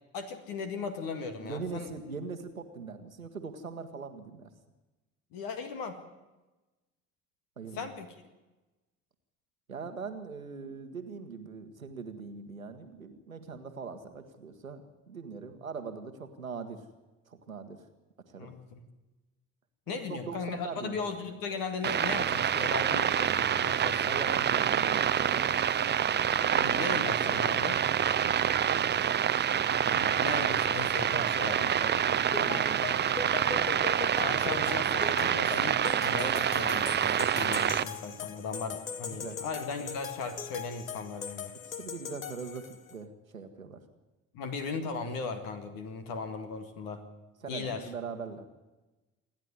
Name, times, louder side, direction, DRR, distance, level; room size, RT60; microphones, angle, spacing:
voice 1, 0.1-1.9 5.3-6.0 7.7-8.1 18.4-18.8 19.9-24.2 26.5-27.8 29.9-31.7 34.2-41.5 44.3-47.0 47.5-47.9, left 4 dB, 55° left, 7 dB, 2.1 m, -37 dB
voice 2, 1.4-4.5 7.6-7.9 9.7-16.8 17.3-17.8 18.3-18.5 19.9-21.0 24.1-25.7 26.4-26.7 27.1-27.7 28.2-28.9 31.1-33.2 39.1-39.4 41.6-43.8 47.4-48.5, right 5 dB, 85° right, 7 dB, 1.4 m, -41 dB
sound 1, 21.8-37.8, right 9 dB, 25° right, 0.8 m, -27 dB
sound 2, 32.3-43.0, left 8 dB, 80° left, 0.9 m, -40 dB
28.0 x 10.5 x 9.6 m, 1.1 s
figure-of-eight pair, 50°, 40 cm